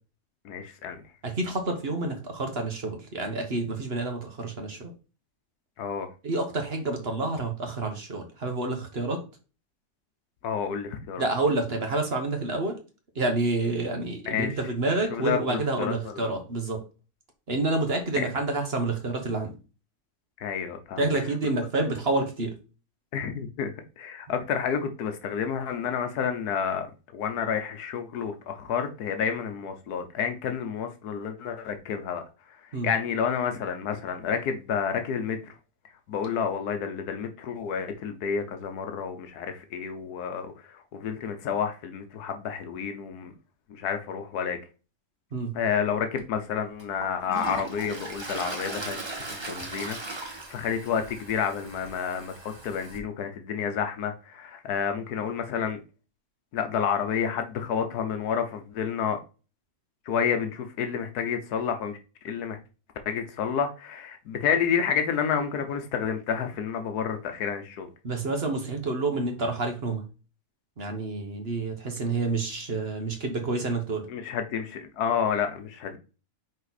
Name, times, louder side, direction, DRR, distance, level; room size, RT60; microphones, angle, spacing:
voice 1, 0.4-1.0 5.8-6.1 10.4-11.3 14.3-14.5 15.1-16.3 18.2-18.3 20.4-21.0 23.1-26.9 27.1-32.2 32.8-35.5 36.1-43.3 43.7-44.6 45.5-49.0 49.3-55.8 56.5-59.2 60.1-62.0 62.2-62.6 63.1-67.9 74.1-76.0, left 7 dB, 85° left, 1.4 m, -30 dB
voice 2, 1.2-4.9 6.2-9.2 11.2-12.8 13.1-16.8 17.5-19.6 21.0-22.5 32.7-32.9 45.3-45.5 68.0-70.0 70.8-74.1, right 2 dB, 45° right, 1.4 m, -28 dB
Toilet flush, 46.1-46.2 46.8-53.0, right 2 dB, 20° right, 1.0 m, -38 dB
5.4 x 4.4 x 4.1 m
omnidirectional pair, 1.6 m